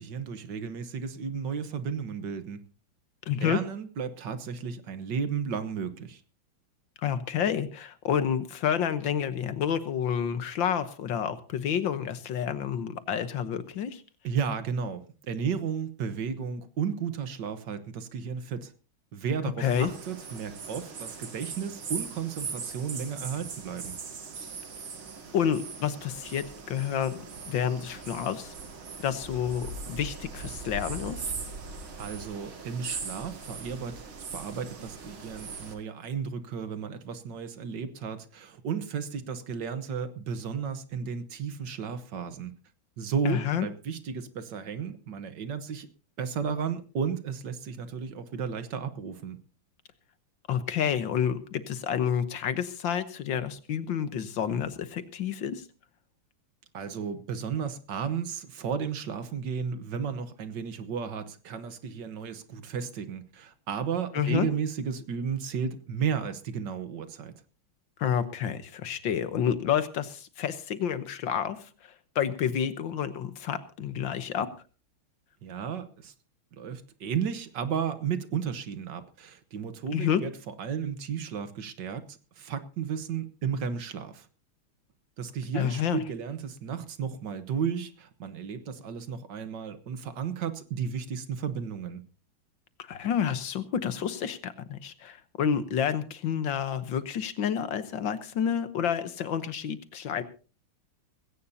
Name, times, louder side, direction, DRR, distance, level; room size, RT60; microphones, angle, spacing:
voice 1, 0.0-2.6 3.4-6.2 14.2-18.7 19.1-24.0 32.0-34.0 34.3-42.6 43.0-45.9 46.2-49.4 56.7-67.3 75.4-76.1 76.6-84.3 85.2-92.1, right 7 dB, 65° right, 1.7 m, -33 dB
voice 2, 3.3-3.6 7.0-14.0 19.6-19.9 25.3-28.5 29.0-31.3 43.3-43.7 50.5-55.6 64.1-64.5 68.0-74.5 79.9-80.2 85.5-86.0 92.8-100.2, left 8 dB, 70° left, 1.8 m, -29 dB
sound 1, 19.6-35.7, right 5 dB, 80° right, 2.9 m, -40 dB
19.5 x 17.0 x 2.8 m
omnidirectional pair, 2.2 m